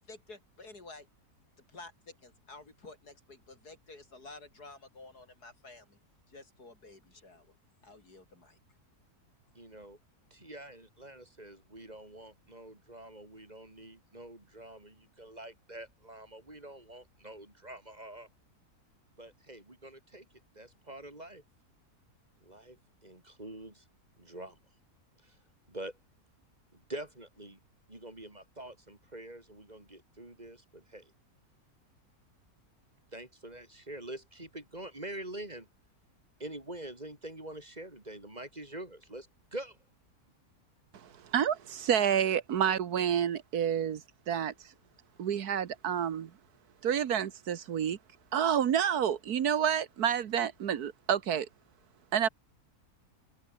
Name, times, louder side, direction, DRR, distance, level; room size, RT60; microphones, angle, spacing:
voice 1, 0.1-1.1 1.7-6.0 6.3-7.5 7.8-8.6, left 3 dB, 80° left, 5.2 m, -51 dB
voice 2, 9.5-10.0 10.3-18.3 19.2-20.3 20.5-21.4 22.4-23.9 24.2-24.6 25.2-25.4 25.7-26.0 26.7-27.6 27.9-31.1 33.1-35.7 36.4-39.8, right 1 dB, 25° right, 3.7 m, -45 dB
voice 3, 40.9-44.7 45.2-46.3 46.8-48.0 48.3-51.5 52.1-52.3, right 9 dB, 75° right, 1.6 m, -29 dB
open air
omnidirectional pair, 1.7 m